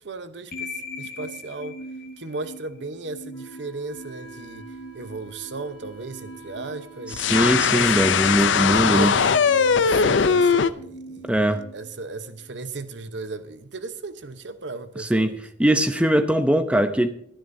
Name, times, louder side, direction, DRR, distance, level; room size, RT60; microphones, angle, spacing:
voice 1, 0.0-1.8 2.2-7.3 7.7-11.3 11.7-15.4, right 3 dB, 75° right, 1.0 m, -36 dB
sound 1, 0.5-12.6, left 1 dB, 55° left, 1.3 m, -42 dB
Wind instrument woodwind instrument, 3.3-9.5, right 3 dB, 15° left, 5.0 m, -45 dB
sound 2, 7.1-10.7, left 6 dB, 80° left, 0.5 m, -20 dB
voice 2, 7.1-9.1 11.3-11.6 15.0-15.3 15.6-17.1, right 1 dB, 5° right, 0.6 m, -21 dB
23.0 x 10.0 x 2.7 m
head